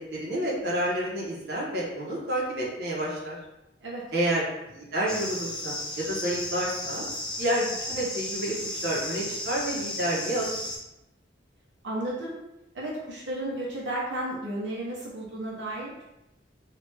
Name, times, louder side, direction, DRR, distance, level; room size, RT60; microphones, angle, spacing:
voice 1, 0.1-3.4 4.1-4.4 4.7-7.0 7.4-10.6, right 1 dB, 60° right, -5 dB, 0.9 m, -29 dB
sound 1, 5.1-10.8, left 1 dB, 5° left, 0.5 m, -34 dB
voice 2, 11.8-12.4 12.7-16.0, right 1 dB, 85° right, -5 dB, 0.8 m, -33 dB
3.1 x 2.5 x 3.3 m, 0.91 s
head